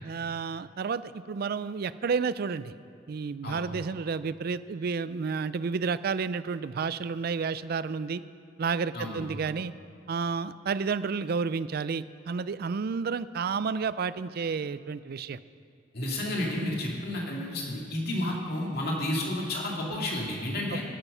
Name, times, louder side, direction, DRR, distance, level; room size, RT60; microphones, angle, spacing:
voice 1, 0.0-2.7 3.1-8.2 8.6-9.7 10.1-15.4 18.2-18.4 20.7-20.8, right 5 dB, 50° right, 15 dB, 0.4 m, -31 dB
voice 2, 15.9-20.8, left 1 dB, 55° left, -2 dB, 2.4 m, -31 dB
15.5 x 9.1 x 5.6 m, 2.4 s
head